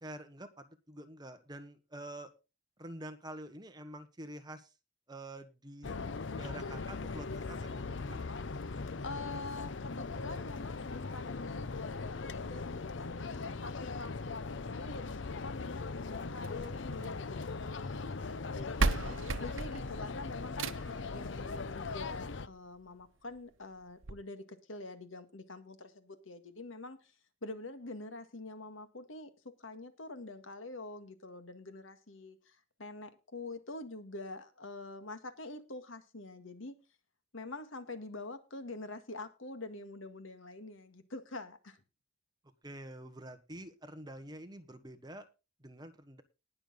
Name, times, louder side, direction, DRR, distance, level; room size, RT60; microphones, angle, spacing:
voice 1, 0.0-2.3 2.8-4.7 5.1-6.0 6.3-8.2 42.6-45.2 45.6-46.2, right 1 dB, 20° right, 9 dB, 1.4 m, -47 dB
sound 1, 5.8-22.5, left 4 dB, 65° left, 0.7 m, -40 dB
voice 2, 8.6-19.0 19.4-20.7 21.1-27.1 27.4-36.8 37.3-41.8, left 2 dB, 90° left, 9 dB, 1.9 m, -46 dB
sound 2, 16.4-17.6 18.4-18.5 18.8-21.1 22.4-22.5 23.0-23.1 23.4-23.5 24.0-24.1, right 3 dB, 85° right, 0.9 m, -34 dB
19.5 x 6.8 x 4.0 m, 0.30 s
head